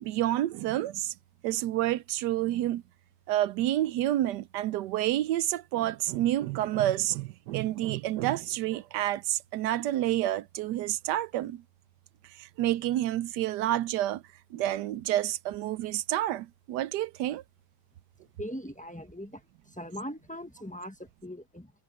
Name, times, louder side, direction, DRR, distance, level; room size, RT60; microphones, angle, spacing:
voice 1, 0.0-1.1 1.4-2.8 3.3-11.6 12.4-14.2 14.5-17.4, right 13 dB, 75° right, 1.0 m, -29 dB
voice 2, 18.4-21.7, equal, 5° left, 0.7 m, -40 dB
omnidirectional pair, 2.2 m